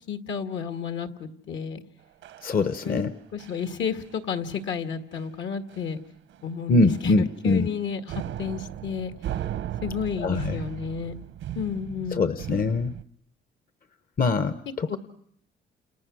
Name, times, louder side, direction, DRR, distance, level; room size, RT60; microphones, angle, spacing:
voice 1, 0.1-1.8 2.9-3.0 3.3-6.0 6.4-8.0 8.4-9.1 9.8-11.1 11.5-12.3 14.9-15.0, left 7 dB, 70° left, 8 dB, 2.0 m, -31 dB
sound 1, 2.2-3.1 3.4-3.7 4.0-4.2 4.5-4.7 5.1-5.2 5.7-6.0 6.3-6.5 6.9-7.8 8.1-13.0, right 11 dB, 85° right, 1.0 m, -37 dB
voice 2, 2.4-3.1 6.7-7.7 10.2-10.6 12.1-12.9 14.2-15.0, left 3 dB, 45° left, 11 dB, 1.1 m, -23 dB
30.0 x 28.5 x 6.3 m, 0.68 s
cardioid pair, 95°, 20 cm